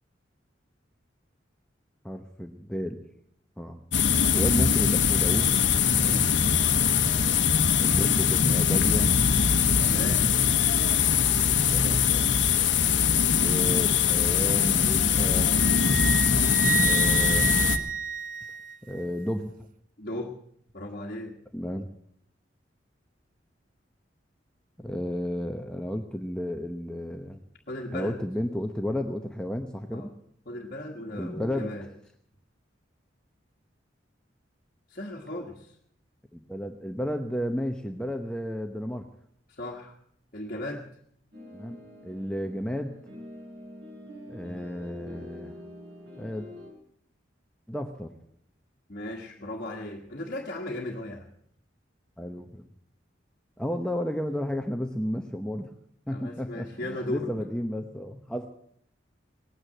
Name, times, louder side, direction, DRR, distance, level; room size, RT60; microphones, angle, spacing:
voice 1, 2.0-3.0 3.6-3.8 4.3-5.5 7.8-9.1 11.4-12.1 13.3-15.6 16.7-17.6 18.8-19.5 21.5-21.9 24.8-27.4 27.9-30.1 31.1-31.7 36.3-39.1 41.5-43.0 44.3-45.5 46.2-46.5 47.7-48.1 52.2-52.7 53.6-55.7 56.1-58.5, equal, 5° left, 5 dB, 0.8 m, -32 dB
sound 1, 3.9-17.8, left 7 dB, 75° left, 1.1 m, -22 dB
voice 2, 5.9-6.6 9.8-10.3 20.0-20.4 20.7-21.4 27.7-28.2 29.9-30.1 30.4-31.9 34.9-35.8 39.5-40.0 40.3-40.9 44.4-44.6 48.9-51.3 56.1-57.4, left 1 dB, 50° left, -1 dB, 1.6 m, -36 dB
Wind instrument woodwind instrument, 15.6-19.1, right 9 dB, 45° right, 0.7 m, -30 dB
sound 2, 41.3-46.7, left 1 dB, 65° right, 6.7 m, -45 dB
19.0 x 9.5 x 7.9 m, 0.69 s
head